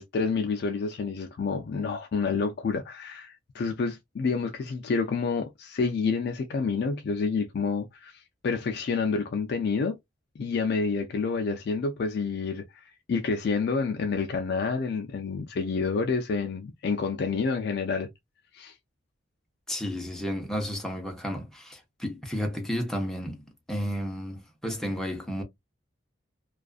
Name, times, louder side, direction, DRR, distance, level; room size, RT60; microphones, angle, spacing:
voice 1, 0.0-10.0 10.4-18.1 18.5-18.7, left 4 dB, 55° left, 0.3 m, -28 dB
voice 2, 19.7-25.4, equal, 5° left, 0.6 m, -32 dB
2.4 x 2.4 x 2.3 m
head